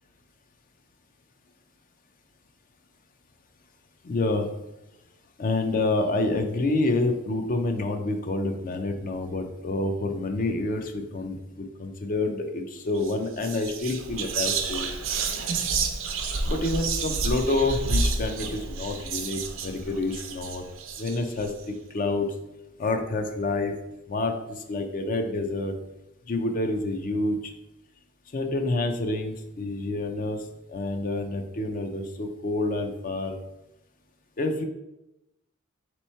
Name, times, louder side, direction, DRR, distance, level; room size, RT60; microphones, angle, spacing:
voice 1, 4.0-4.5 5.4-14.9 16.5-20.6 21.0-21.5 21.9-22.3 22.8-23.7 24.1-24.3 24.7-25.7 26.3-27.4 28.3-30.4 30.7-33.4 34.4-34.6, left 2 dB, 40° left, 5 dB, 0.5 m, -28 dB
Whispering, 12.9-13.1 13.4-21.5, right 4 dB, 70° right, 0.5 m, -30 dB
3.5 x 3.0 x 4.2 m, 0.92 s
head